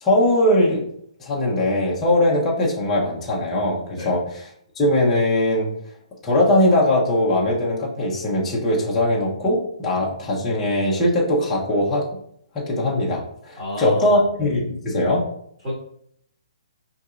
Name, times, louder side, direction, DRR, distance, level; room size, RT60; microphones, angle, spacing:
voice 1, 0.0-0.9 1.2-4.4 4.8-5.7 6.2-12.1 12.5-15.2, left 1 dB, 10° left, -5 dB, 0.5 m, -20 dB
voice 2, 13.6-14.2 15.6-15.7, left 1 dB, 15° right, -8 dB, 1.0 m, -29 dB
5.1 x 2.8 x 2.4 m, 0.68 s
hypercardioid pair, 175°, 4 cm